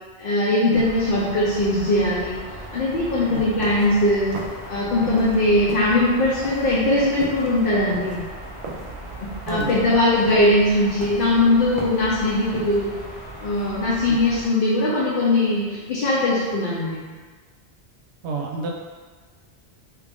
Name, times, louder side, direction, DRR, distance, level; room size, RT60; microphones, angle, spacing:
voice 1, 0.2-2.4 2.7-4.4 4.7-8.2 9.2-12.9 13.4-17.1, left 1 dB, 60° left, -6 dB, 0.7 m, -20 dB
sound 1, 0.7-14.5, right 1 dB, 15° right, 1.0 m, -38 dB
sound 2, 3.6-5.4 5.6-12.9, right 3 dB, 55° right, 0.3 m, -38 dB
voice 2, 9.5-9.8 11.8-11.9 14.1-14.2 18.2-18.7, right 3 dB, 85° right, 0 dB, 0.9 m, -30 dB
3.0 x 2.4 x 3.4 m, 1.5 s
omnidirectional pair, 1.1 m